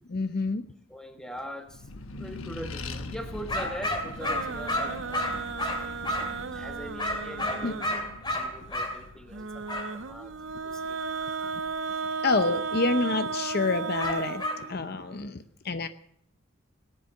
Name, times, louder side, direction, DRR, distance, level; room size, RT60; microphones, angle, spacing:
voice 1, 0.1-0.6 7.6-7.8 12.2-14.4 14.7-15.9, left 3 dB, 45° left, 10 dB, 0.7 m, -27 dB
voice 2, 0.9-1.8 2.1-5.4 6.2-10.3 10.6-11.0 11.4-11.5 11.9-12.0 12.5-12.6, equal, 5° left, 5 dB, 1.4 m, -42 dB
Accelerating revving vroom, 1.7-12.6, left 2 dB, 75° left, 1.2 m, -43 dB
sound 1, 3.5-6.4 7.0-9.0 9.7-9.9 14.0-14.6, left 1 dB, 20° left, 2.8 m, -31 dB
sound 2, 4.2-8.2 9.3-15.1, right 4 dB, 60° right, 0.7 m, -35 dB
18.5 x 9.9 x 7.7 m, 0.70 s
head